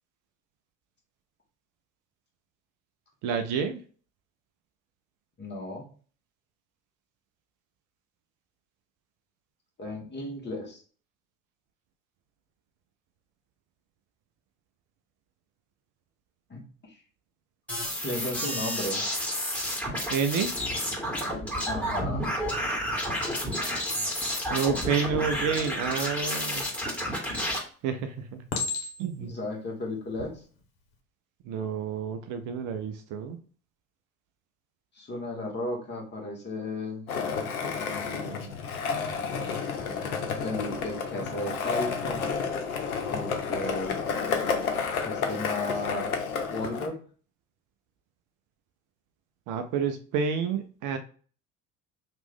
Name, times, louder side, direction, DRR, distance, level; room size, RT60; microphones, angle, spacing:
voice 1, 3.2-3.8 20.1-20.5 24.5-26.7 27.8-28.5 29.0-29.3 31.4-33.4 49.5-51.0, right 6 dB, 45° right, 7 dB, 0.6 m, -29 dB
voice 2, 5.4-5.9 9.8-10.8 16.5-17.0 18.0-19.0 21.7-22.3 29.3-30.4 34.9-37.1 37.8-38.6 39.7-40.1 40.4-42.3 43.1-44.0 45.0-46.1 46.5-47.0, left 2 dB, 25° left, 0 dB, 1.3 m, -35 dB
sound 1, 17.7-27.6, equal, 5° left, 1.8 m, -30 dB
Chink clink, 27.0-27.5 28.5-29.3 30.0-30.3, left 4 dB, 60° left, 1.1 m, -33 dB
Skateboard, 37.1-46.9, left 5 dB, 85° left, 0.7 m, -31 dB
3.0 x 2.5 x 3.6 m, 0.41 s
hypercardioid pair, 70°, 42 cm